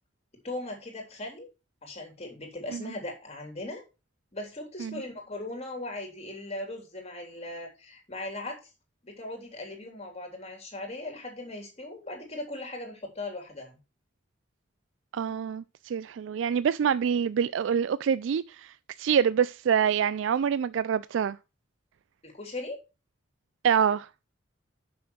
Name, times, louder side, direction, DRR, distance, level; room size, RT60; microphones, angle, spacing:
voice 1, 0.4-1.5 1.8-3.8 4.3-8.6 9.0-13.8 22.2-22.8, left 2 dB, 35° left, 3.3 m, -38 dB
voice 2, 15.1-21.4 23.6-24.1, right 7 dB, 75° right, 0.3 m, -26 dB
6.9 x 6.3 x 6.0 m
head